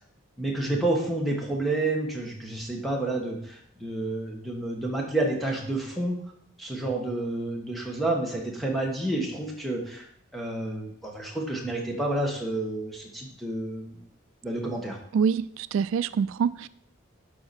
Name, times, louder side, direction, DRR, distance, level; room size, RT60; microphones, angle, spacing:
voice 1, 0.4-6.2 6.6-10.0 10.3-14.0 14.4-15.0, right 2 dB, ahead, -1 dB, 1.5 m, -29 dB
voice 2, 15.1-16.7, right 6 dB, 85° right, 16 dB, 0.3 m, -25 dB
11.5 x 4.9 x 4.4 m, 0.68 s
head